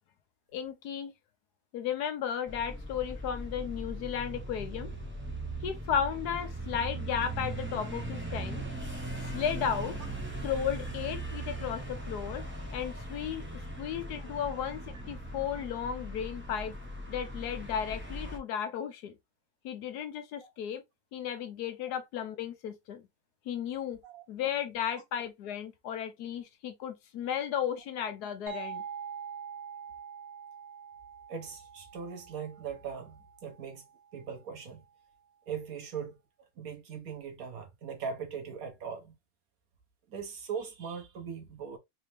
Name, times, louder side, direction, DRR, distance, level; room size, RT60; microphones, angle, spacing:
voice 1, 0.5-1.1 1.7-4.9 5.6-8.8 9.2-10.0 10.4-12.4 12.7-16.8 17.1-19.1 19.6-20.8 21.1-23.0 23.5-24.0 24.3-28.8, left 8 dB, 80° left, 1.3 m, -34 dB
sound 1, 2.5-18.4, right 1 dB, 10° right, 0.6 m, -39 dB
sound 2, 28.5-33.9, right 7 dB, 30° right, 1.2 m, -44 dB
voice 2, 31.3-33.8 34.1-34.8 35.5-36.2 36.6-39.1 40.1-41.8, right 6 dB, 65° right, 1.5 m, -40 dB
4.1 x 2.8 x 3.1 m
omnidirectional pair, 1.7 m